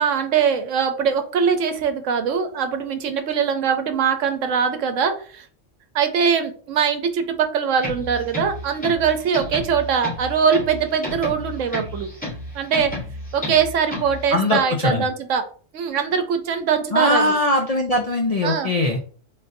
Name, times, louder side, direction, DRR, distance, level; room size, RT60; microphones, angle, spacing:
voice 1, 0.0-5.5 5.9-12.1 12.5-12.9 13.3-15.5 15.7-17.3 18.4-18.7, right 7 dB, 80° right, 8 dB, 1.0 m, -22 dB
sound 1, 7.8-14.3, left 1 dB, 5° left, 1.9 m, -32 dB
voice 2, 14.3-15.0 16.9-19.0, left 1 dB, 50° left, 1 dB, 0.4 m, -21 dB
3.9 x 3.7 x 2.5 m, 0.43 s
omnidirectional pair, 1.3 m